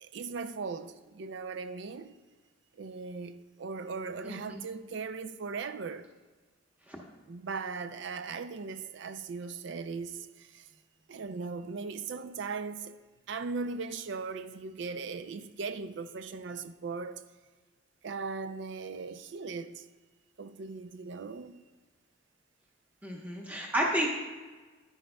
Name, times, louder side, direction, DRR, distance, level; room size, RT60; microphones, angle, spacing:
voice 1, 0.0-2.1 2.8-6.1 7.3-10.7 11.1-13.0 13.3-17.2 18.0-19.8 20.4-21.6, right 4 dB, 60° right, 0.4 m, -38 dB
voice 2, 4.2-4.6 6.9-7.0 23.0-24.1, equal, 10° right, 0.9 m, -31 dB
10.5 x 10.5 x 2.2 m
head